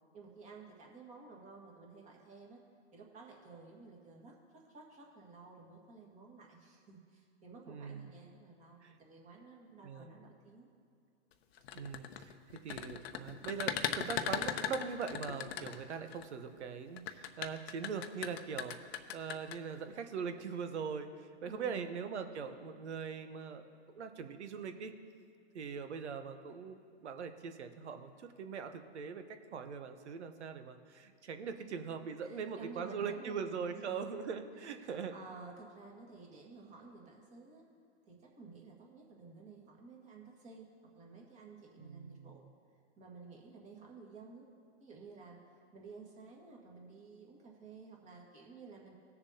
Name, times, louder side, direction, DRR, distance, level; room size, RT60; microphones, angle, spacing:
voice 1, 0.1-2.6 2.9-10.7 21.4-21.9 32.2-33.4 33.9-34.0 34.6-37.7 38.1-40.7 40.9-42.4 43.0-44.5 44.8-48.9, right 4 dB, 20° right, -1 dB, 1.8 m, -53 dB
voice 2, 7.7-8.1 8.8-9.0 9.8-10.2 11.7-23.7 23.9-24.9 25.5-35.1 41.8-42.4, right 6 dB, 75° right, 8 dB, 1.1 m, -41 dB
sound 1, 11.6-16.2 17.0-19.6, left 9 dB, 65° left, 0.8 m, -38 dB
18.5 x 6.9 x 2.8 m, 2.3 s
hypercardioid pair, 135°, 34 cm